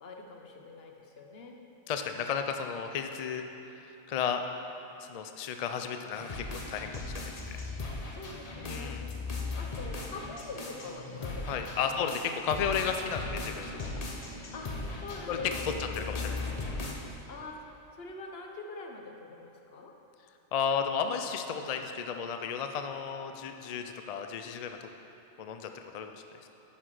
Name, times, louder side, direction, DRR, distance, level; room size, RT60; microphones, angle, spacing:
voice 1, 0.0-1.6 8.1-9.0 9.3-12.1 14.5-15.9 17.3-17.6 17.9-19.9, left 3 dB, 55° left, 2 dB, 1.0 m, -44 dB
voice 2, 1.9-3.4 3.8-4.4 5.0-7.6 8.6-9.1 11.5-14.0 15.3-15.4 15.6-16.4 20.5-24.8 25.4-26.5, left 7 dB, 80° left, 6 dB, 0.3 m, -34 dB
sound 1, 6.1-16.9, left 3 dB, 35° left, 0.8 m, -38 dB
9.8 x 5.9 x 4.8 m, 2.9 s
omnidirectional pair, 1.3 m